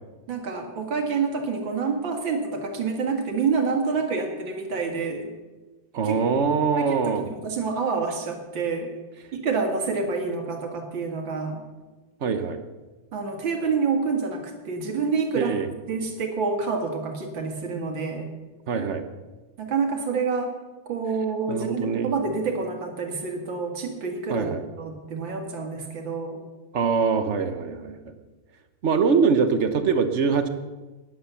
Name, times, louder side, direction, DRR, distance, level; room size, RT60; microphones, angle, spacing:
voice 1, 0.3-5.3 6.0-6.1 6.8-8.9 9.3-11.6 13.1-15.5 15.9-18.3 19.6-20.5 20.9-24.5 24.8-26.4, right 4 dB, 80° right, 4 dB, 2.5 m, -27 dB
voice 2, 5.9-7.3 12.2-12.6 15.3-15.7 18.7-19.0 21.5-22.1 24.3-24.6 26.7-28.0 28.8-30.5, right 5 dB, 50° right, 9 dB, 0.9 m, -23 dB
11.5 x 10.0 x 6.9 m, 1.2 s
omnidirectional pair, 2.1 m